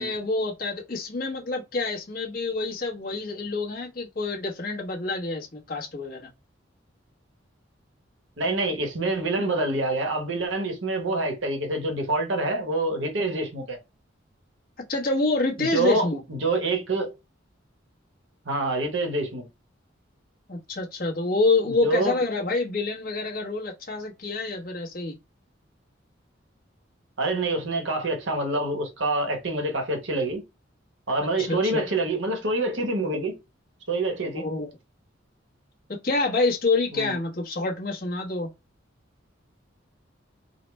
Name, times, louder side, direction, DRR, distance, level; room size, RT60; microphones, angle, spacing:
voice 1, 0.0-6.3 14.9-16.2 20.5-25.2 31.5-31.8 34.3-34.7 36.0-38.5, left 3 dB, 50° left, 1.1 m, -27 dB
voice 2, 8.4-13.8 15.6-17.1 18.4-19.4 21.6-22.2 27.2-30.4 31.1-33.4 33.9-34.5 36.9-37.2, right 2 dB, 75° right, 1.1 m, -26 dB
4.1 x 2.1 x 3.2 m
head